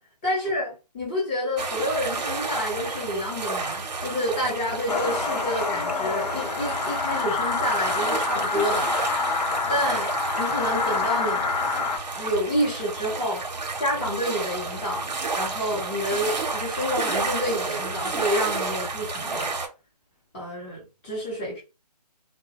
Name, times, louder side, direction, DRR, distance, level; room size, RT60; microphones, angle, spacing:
voice 1, 0.2-9.2 9.7-10.1 10.4-11.4 12.1-13.5 13.8-15.1 15.4-19.6 20.3-21.6, equal, 15° left, 0.6 m, -29 dB
sound 1, 1.6-19.7, right 3 dB, 85° right, 0.7 m, -31 dB
sound 2, 4.9-12.0, left 4 dB, 70° left, 0.7 m, -27 dB
2.2 x 2.0 x 2.7 m
figure-of-eight pair, 155°, 21 cm